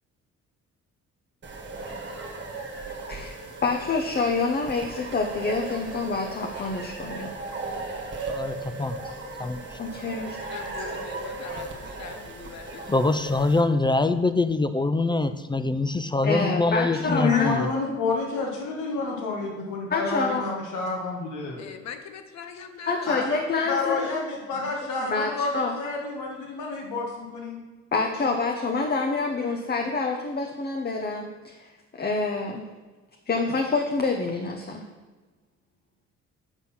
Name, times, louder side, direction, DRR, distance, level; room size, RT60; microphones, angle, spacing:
sound 1, 1.4-13.6, right 3 dB, 40° right, 1.4 m, -37 dB
voice 1, 3.1-7.3 8.8-8.9 9.8-10.4 16.2-17.5 19.9-20.4 22.9-24.1 25.1-25.7 27.9-32.7 33.3-34.8, left 4 dB, 35° left, 3 dB, 0.8 m, -27 dB
voice 2, 8.3-9.0 9.4-9.8 11.5-11.6 12.9-17.7, left 2 dB, 15° left, 11 dB, 0.3 m, -24 dB
voice 3, 10.3-12.8 21.6-23.4, left 7 dB, 60° left, 7 dB, 0.9 m, -42 dB
voice 4, 17.0-21.6 23.1-27.6, left 4 dB, 80° left, -1 dB, 1.5 m, -29 dB
8.0 x 4.1 x 5.6 m, 1.3 s
cardioid pair, 90°, 30 cm